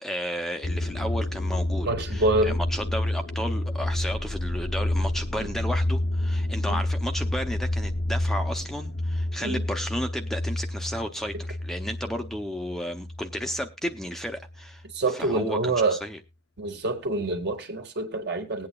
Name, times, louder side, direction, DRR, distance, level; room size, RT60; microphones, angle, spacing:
voice 1, 0.0-14.8 15.2-16.2, equal, ahead, 0.6 m, -33 dB
sound 1, 0.6-13.7 14.0-14.6, left 1 dB, 70° left, 0.7 m, -29 dB
voice 2, 1.8-2.6 5.4-5.5 6.7-6.8 9.4-9.6 14.8-16.0 16.6-18.7, right 2 dB, 55° right, 1.7 m, -26 dB
20.0 x 8.7 x 2.3 m
head